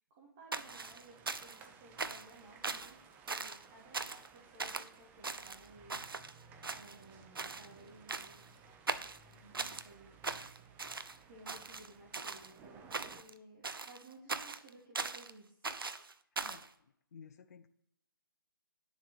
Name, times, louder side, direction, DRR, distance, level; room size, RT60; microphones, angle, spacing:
voice 1, 0.1-4.0 4.3-8.7 9.3-10.1 11.3-15.8, right 2 dB, 30° right, 2.6 m, -58 dB
sound 1, 0.5-1.7 2.0-2.3 2.6-2.9 3.3-3.6 3.9-4.3 4.6-4.9 5.2-6.3 6.6-7.1 7.4-7.7 8.1-8.5 8.9-9.9 10.2-11.2 11.5-12.5 12.9-13.3 13.6-15.3 15.6-16.7, right 4 dB, 75° right, 0.7 m, -40 dB
sound 2, 0.7-13.2, right 5 dB, 15° right, 0.6 m, -59 dB
voice 2, 16.4-17.7, left 6 dB, 45° left, 0.6 m, -55 dB
10.5 x 7.3 x 4.5 m
figure-of-eight pair, 140°, 12 cm